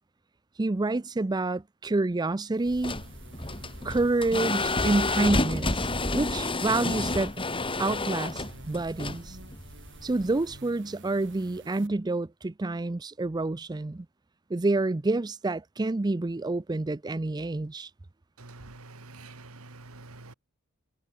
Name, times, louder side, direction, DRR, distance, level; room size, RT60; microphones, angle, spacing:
voice 1, 0.6-3.0 3.8-7.3 7.8-9.4 10.0-14.1 14.5-17.9, right 2 dB, 20° right, 0.5 m, -28 dB
sound 1, 2.5-11.9, right 2 dB, 60° right, 7.3 m, -50 dB
sound 2, 2.7-10.6, left 2 dB, 25° left, 2.9 m, -30 dB
voice 2, 18.4-20.3, right 2 dB, 90° right, 2.3 m, -47 dB
head